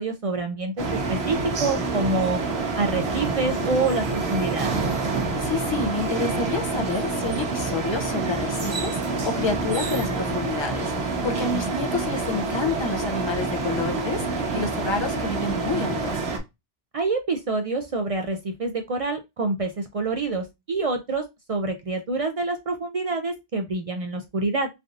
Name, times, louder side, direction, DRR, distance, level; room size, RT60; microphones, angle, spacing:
voice 1, 0.0-2.4 2.8-4.8 11.5-11.7 16.9-24.7, right 3 dB, 55° right, 0.4 m, -27 dB
sound 1, 0.8-16.4, right 3 dB, 85° right, 1.1 m, -27 dB
voice 2, 5.1-16.2, left 4 dB, 35° left, 0.5 m, -29 dB
3.3 x 2.5 x 2.4 m
omnidirectional pair, 1.0 m